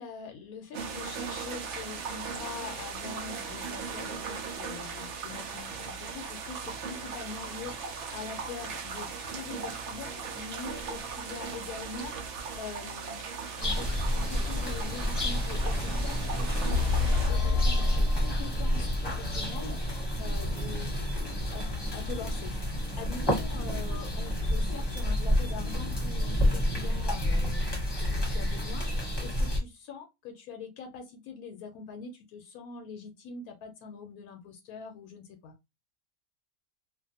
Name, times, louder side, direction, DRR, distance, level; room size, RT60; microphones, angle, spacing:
voice 1, 0.0-35.5, left 5 dB, 75° left, 1.0 m, -44 dB
sound 1, 0.7-17.3, right 5 dB, 65° right, 0.8 m, -38 dB
sound 2, 13.6-29.6, equal, 20° left, 0.9 m, -29 dB
sound 3, 16.7-19.0, left 10 dB, 55° left, 0.8 m, -32 dB
2.5 x 2.4 x 2.7 m
omnidirectional pair, 1.6 m